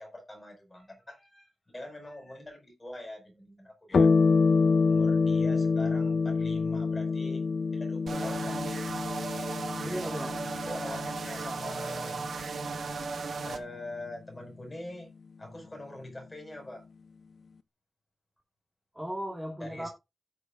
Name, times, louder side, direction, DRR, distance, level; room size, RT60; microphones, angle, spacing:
voice 1, 0.0-4.1 4.9-7.4 7.7-8.6 10.7-12.3 13.4-15.1 15.4-16.8 19.6-19.9, left 1 dB, 20° left, 5.1 m, -43 dB
sound 1, 3.9-12.8, left 4 dB, 60° left, 0.7 m, -27 dB
sound 2, 8.1-13.6, right 4 dB, 80° right, 1.5 m, -36 dB
voice 2, 9.8-10.4 18.9-19.9, equal, 5° right, 1.8 m, -36 dB
16.5 x 6.7 x 2.4 m
wide cardioid pair, 170°, 0 cm